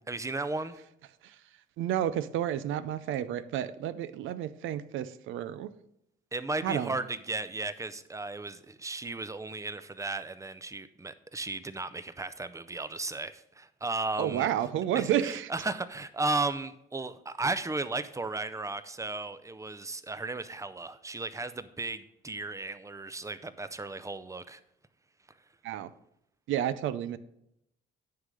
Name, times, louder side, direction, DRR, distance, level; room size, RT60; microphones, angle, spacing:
voice 1, 0.1-0.8 6.3-14.5 14.9-24.6, right 3 dB, 15° right, 13 dB, 0.5 m, -35 dB
voice 2, 1.8-5.7 6.6-6.9 14.2-15.5 25.6-25.9 26.5-27.2, right 11 dB, 80° right, 14 dB, 0.5 m, -31 dB
9.5 x 3.8 x 6.3 m, 0.79 s
cardioid pair, 90°, 20 cm